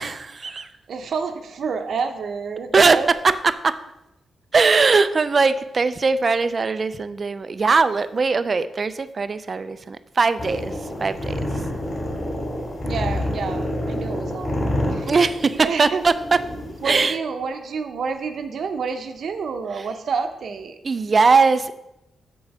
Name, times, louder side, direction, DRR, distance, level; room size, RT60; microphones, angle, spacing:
voice 1, 0.0-0.7 2.7-3.7 4.5-11.4 15.1-16.4 16.8-17.2 19.8-19.9 20.8-21.7, right 4 dB, 35° right, 13 dB, 0.4 m, -20 dB
voice 2, 0.9-3.1 12.8-15.1 15.6-16.0 16.8-20.8, right 5 dB, 65° right, 7 dB, 0.8 m, -29 dB
sound 1, 10.4-17.0, left 1 dB, 35° left, 3.0 m, -27 dB
8.1 x 3.9 x 6.5 m, 0.92 s
wide cardioid pair, 140°, 0 cm